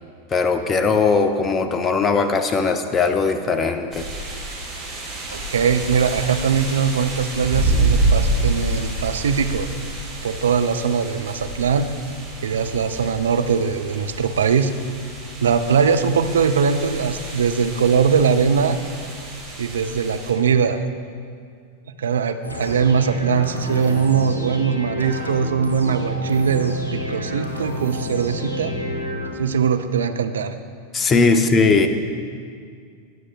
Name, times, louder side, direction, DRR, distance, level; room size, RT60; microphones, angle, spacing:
voice 1, 0.3-4.1 30.9-31.9, left 4 dB, 20° left, 8 dB, 0.6 m, -19 dB
sound 1, 3.9-20.3, right 2 dB, 20° right, 2.3 m, -28 dB
voice 2, 5.3-9.7 10.2-11.9 12.4-14.7 15.4-18.8 19.6-20.8 22.0-28.7 29.4-30.5, right 6 dB, 65° right, 9 dB, 0.4 m, -21 dB
sound 2, 22.4-29.3, equal, 80° left, 1.0 m, -30 dB
18.5 x 6.3 x 2.3 m, 2.2 s
figure-of-eight pair, 90°, 0 cm